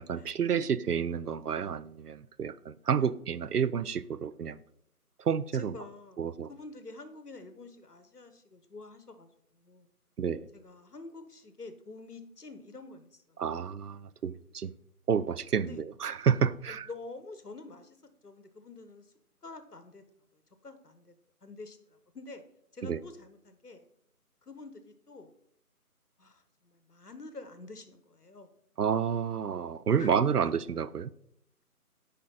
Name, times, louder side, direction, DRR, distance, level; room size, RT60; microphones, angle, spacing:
voice 1, 0.0-4.6 5.2-5.8 6.2-6.5 10.2-10.5 13.4-14.7 15.1-16.9 22.8-23.0 28.8-31.1, right 7 dB, 85° right, 0.5 m, -30 dB
voice 2, 5.5-9.9 10.5-13.7 15.6-15.8 16.7-18.0 18.2-19.1 19.4-20.0 20.3-21.1 21.4-22.4 22.7-23.9 24.4-25.3 26.2-28.5 30.0-30.1, left 3 dB, 80° left, 1.2 m, -48 dB
8.7 x 5.1 x 4.0 m
figure-of-eight pair, 165°, 46 cm